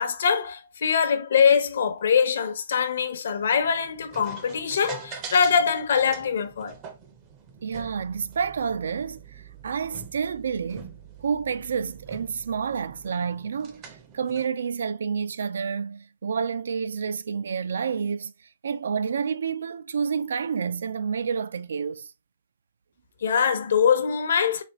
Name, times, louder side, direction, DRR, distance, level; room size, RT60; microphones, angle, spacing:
voice 1, 0.0-6.8 23.2-24.6, left 6 dB, 60° left, 0.8 m, -23 dB
sound 1, 3.4-14.5, right 6 dB, 20° right, 0.5 m, -44 dB
voice 2, 7.6-18.3 18.6-22.1, right 6 dB, 70° right, 0.4 m, -29 dB
4.1 x 3.0 x 2.9 m
hypercardioid pair, 175°, 0 cm